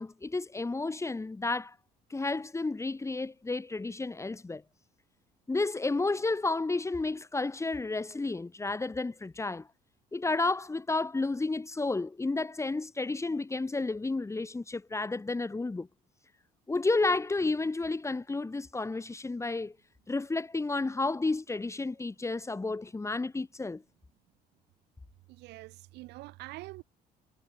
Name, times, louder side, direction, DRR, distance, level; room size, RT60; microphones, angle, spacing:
voice 1, 0.0-1.8 2.1-4.6 5.5-9.7 10.1-15.9 16.7-19.7 20.1-23.8, left 3 dB, 15° left, 3.6 m, -31 dB
voice 2, 25.3-26.8, right 20 dB, 90° right, 3.5 m, -45 dB
cardioid pair, 110°, 17 cm